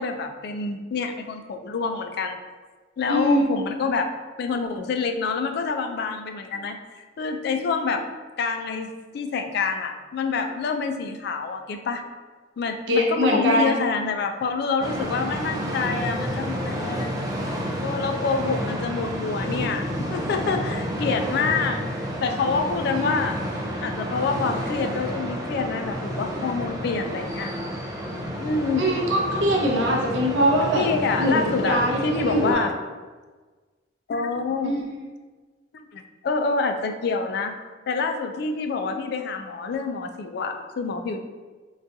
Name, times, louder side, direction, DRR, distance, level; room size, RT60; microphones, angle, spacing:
voice 1, 0.0-2.4 3.0-4.1 4.4-8.0 8.4-12.0 12.6-17.3 17.8-23.4 23.8-27.5 28.4-28.8 30.8-32.7 34.1-34.7 35.7-37.5 37.9-41.2, left 4 dB, 60° left, 6 dB, 0.3 m, -27 dB
voice 2, 3.1-3.4 12.9-13.7 22.9-23.1 28.8-30.8 31.2-32.6 34.6-35.0, equal, 75° right, -1 dB, 0.6 m, -22 dB
sound 1, 14.8-32.5, equal, 20° right, 0.4 m, -30 dB
4.0 x 2.3 x 2.6 m, 1.3 s
head